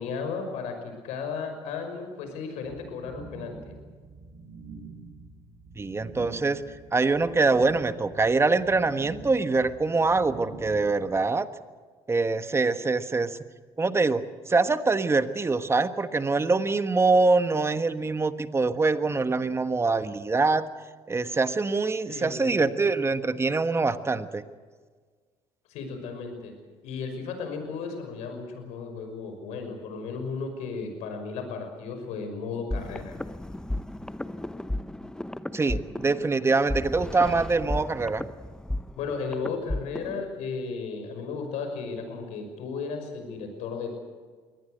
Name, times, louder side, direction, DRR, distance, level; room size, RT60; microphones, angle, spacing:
voice 1, 0.0-3.7 22.1-22.7 25.7-26.5 26.8-33.2 39.0-44.0, left 5 dB, 75° left, 6 dB, 5.8 m, -34 dB
sound 1, 2.6-11.2, right 4 dB, 70° right, 6.8 m, -45 dB
voice 2, 5.7-6.6 6.9-11.5 12.1-13.4 13.8-20.6 21.1-24.4 35.5-38.2, right 3 dB, 20° right, 11 dB, 1.4 m, -24 dB
sound 2, 32.7-40.3, left 1 dB, 5° left, 0.8 m, -34 dB
23.0 x 18.5 x 8.0 m, 1.5 s
supercardioid pair, 80°, 12 cm